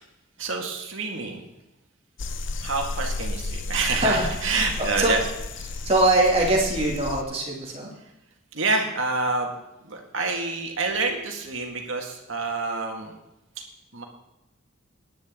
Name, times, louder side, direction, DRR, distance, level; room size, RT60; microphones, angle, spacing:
voice 1, 0.4-1.4 2.6-5.2 5.6-5.8 8.5-9.5 9.8-13.1 13.6-13.7 13.9-14.0, right 3 dB, 75° right, 2 dB, 2.1 m, -27 dB
sound 1, 2.2-7.2, left 2 dB, 65° left, 0.7 m, -32 dB
voice 2, 4.8-5.1 5.8-7.9, right 2 dB, 30° right, -2 dB, 2.7 m, -22 dB
17.5 x 10.0 x 3.8 m, 0.92 s
head